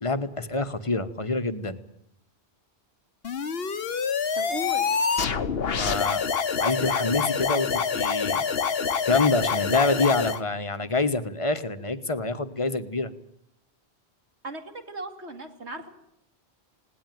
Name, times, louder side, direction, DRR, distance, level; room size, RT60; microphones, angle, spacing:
voice 1, 0.0-1.8 5.7-6.2 6.6-8.4 9.1-13.1, left 3 dB, 30° left, 11 dB, 1.3 m, -26 dB
sound 1, 3.2-10.4, left 6 dB, 65° left, 1.3 m, -26 dB
voice 2, 4.4-4.9 14.4-15.9, equal, 85° right, 5 dB, 3.0 m, -36 dB
20.0 x 18.0 x 9.3 m, 0.75 s
omnidirectional pair, 1.1 m